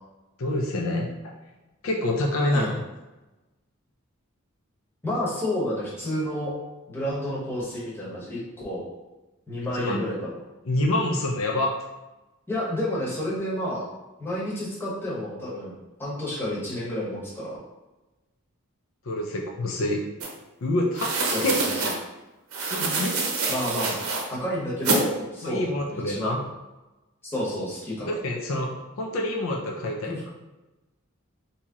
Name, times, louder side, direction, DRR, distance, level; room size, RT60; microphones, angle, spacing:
voice 1, 0.4-1.1 1.8-2.8 9.8-10.1 10.7-11.7 19.1-20.0 20.6-21.1 21.4-21.6 22.7-23.2 25.4-26.4 28.1-28.7 29.0-30.1, left 1 dB, 70° left, 0 dB, 0.5 m, -26 dB
voice 2, 5.0-6.5 6.9-8.8 9.5-10.4 12.5-13.8 14.2-15.7 16.0-17.6 21.3-21.8 23.5-24.0 24.3-26.4 27.2-28.2 30.0-30.2, left 1 dB, 10° left, -7 dB, 0.9 m, -30 dB
sound 1, 20.2-20.3 20.9-22.0 22.5-24.2 24.8-25.0, right 3 dB, 80° right, 0.7 m, -26 dB
2.9 x 2.8 x 3.6 m, 1.1 s
head